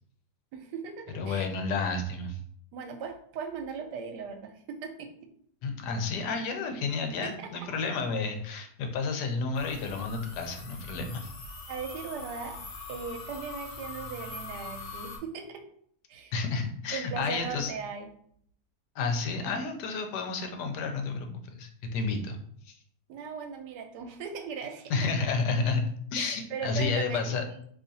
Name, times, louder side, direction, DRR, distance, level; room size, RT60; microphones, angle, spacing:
voice 1, 0.5-1.5 2.7-5.1 7.2-7.5 11.7-12.6 12.9-15.6 16.1-16.3 16.9-18.1 23.1-24.9 26.1-27.5, right 6 dB, 85° right, 5 dB, 1.2 m, -38 dB
voice 2, 1.1-2.4 5.6-11.3 16.3-17.7 18.9-22.4 22.7-22.8 24.9-25.8 26.1-27.6, left 4 dB, 85° left, 4 dB, 1.2 m, -31 dB
sound 1, 9.5-15.2, left 3 dB, 65° left, 0.5 m, -42 dB
2.8 x 2.4 x 3.9 m, 0.63 s
omnidirectional pair, 1.8 m